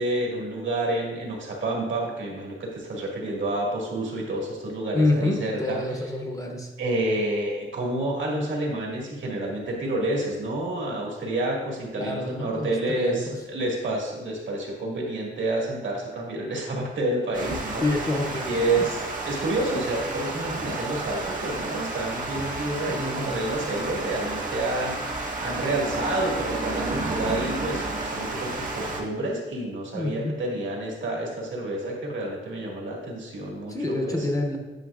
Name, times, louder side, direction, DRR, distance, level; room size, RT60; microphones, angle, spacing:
voice 1, 0.0-5.8 6.8-17.8 18.4-33.7 34.0-34.2, right 2 dB, 75° right, -2 dB, 1.8 m, -29 dB
voice 2, 4.9-6.7 11.9-13.3 17.8-18.9 22.9-23.3 29.9-30.4 33.7-34.6, left 2 dB, 15° left, 2 dB, 0.6 m, -27 dB
Water, 17.3-29.0, right 2 dB, 40° right, 1.0 m, -31 dB
9.1 x 5.7 x 2.4 m, 1.1 s
wide cardioid pair, 160°, 20 cm